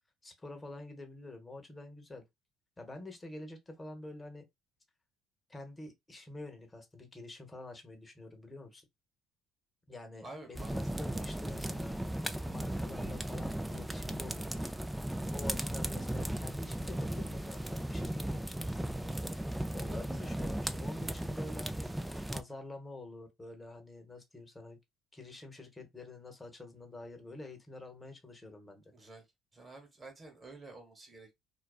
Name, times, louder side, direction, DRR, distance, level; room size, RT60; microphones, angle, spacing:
voice 1, 0.2-2.2 2.8-4.4 5.5-8.8 9.9-14.7 15.3-19.3 19.7-24.8 25.1-28.8, left 2 dB, 20° left, 0.8 m, -47 dB
voice 2, 10.2-10.8 11.0-11.5 19.9-20.1 28.9-29.2 29.5-31.3, right 2 dB, 25° right, 1.2 m, -50 dB
sound 1, 10.5-22.4, right 1 dB, 5° right, 0.3 m, -36 dB
2.4 x 2.2 x 2.3 m
supercardioid pair, 75°, 0 cm